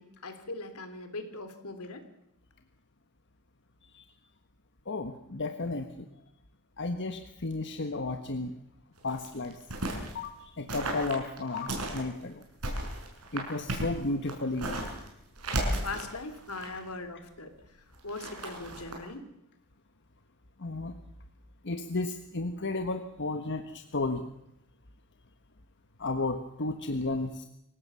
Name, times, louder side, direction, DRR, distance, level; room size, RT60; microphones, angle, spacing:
voice 1, 0.0-2.0 15.8-17.5 18.0-19.3, left 3 dB, 75° left, 8 dB, 3.3 m, -40 dB
voice 2, 4.9-5.9 6.8-8.5 9.0-9.5 10.1-12.4 13.3-14.9 20.6-20.9 21.6-24.2 26.0-27.4, left 2 dB, 55° left, 6 dB, 1.5 m, -33 dB
sound 1, 9.0-10.2 10.7-12.0 12.4-15.1 15.4-16.9 17.9-19.0, right 1 dB, 75° right, 6.3 m, -34 dB
26.5 x 17.5 x 7.1 m, 0.80 s
head